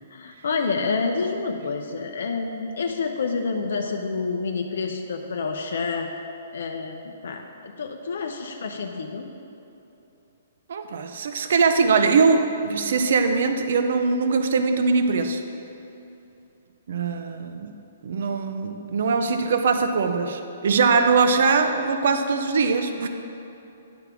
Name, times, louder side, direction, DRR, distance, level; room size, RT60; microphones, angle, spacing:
voice 1, 0.1-6.1 6.5-9.3, left 4 dB, 70° left, 3 dB, 0.6 m, -28 dB
voice 2, 10.7-15.4 16.9-17.7 18.0-23.1, right 4 dB, 60° right, 7 dB, 0.5 m, -21 dB
10.5 x 3.5 x 5.9 m, 2.8 s
hypercardioid pair, 170°, 0 cm